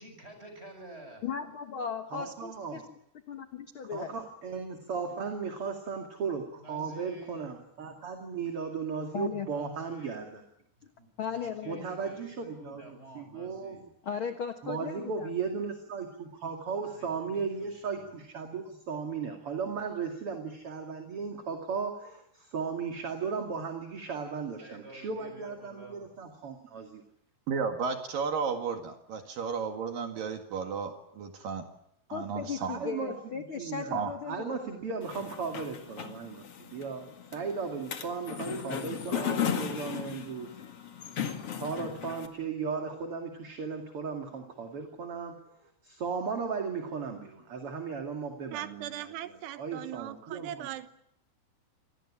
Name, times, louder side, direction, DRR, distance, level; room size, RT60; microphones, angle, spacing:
voice 1, 0.0-1.2 6.6-7.4 9.4-10.2 11.0-13.9 16.8-18.2 24.6-26.1, right 1 dB, 15° right, 5 dB, 7.4 m, -49 dB
voice 2, 1.2-2.8 3.3-4.1 9.1-9.5 11.2-11.9 14.0-15.3 32.1-34.6, left 6 dB, 70° left, 7 dB, 1.2 m, -36 dB
voice 3, 2.1-2.8 3.8-10.4 11.6-13.8 14.6-27.0 32.6-40.5 41.1-41.3 41.5-50.7, right 5 dB, 40° right, 4 dB, 2.8 m, -36 dB
voice 4, 27.5-31.7 32.1-32.8 33.9-34.1, right 5 dB, 60° right, 5 dB, 3.4 m, -33 dB
sound 1, 35.0-42.3, left 8 dB, 45° left, 2.4 m, -36 dB
voice 5, 48.5-50.9, right 12 dB, 90° right, 11 dB, 3.3 m, -39 dB
26.5 x 19.0 x 10.0 m, 0.76 s
omnidirectional pair, 4.7 m